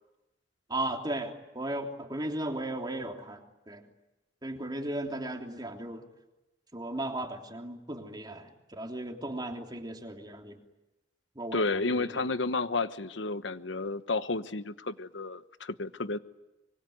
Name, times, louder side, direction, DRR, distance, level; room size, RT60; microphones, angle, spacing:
voice 1, 0.7-3.4 3.7-3.8 4.4-6.0 6.7-10.6 11.3-12.1, right 1 dB, 25° right, 2 dB, 3.2 m, -36 dB
voice 2, 11.5-16.2, left 3 dB, 85° left, 12 dB, 1.1 m, -31 dB
25.0 x 24.0 x 9.5 m, 0.99 s
head